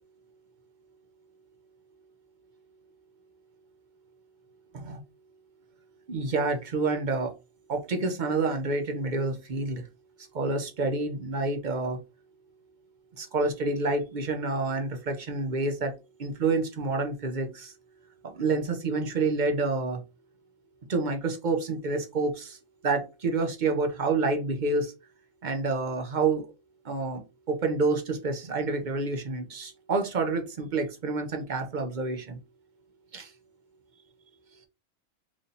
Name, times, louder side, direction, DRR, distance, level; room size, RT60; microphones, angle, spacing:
voice 1, 6.1-7.3 7.7-9.9 10.3-12.0 13.1-17.7 18.2-20.0 20.9-22.6 22.8-24.9 25.4-26.5 26.8-27.2 27.5-32.4 33.1-33.3, right 3 dB, 45° right, 0.6 m, -28 dB
3.1 x 2.7 x 3.9 m
omnidirectional pair, 1.5 m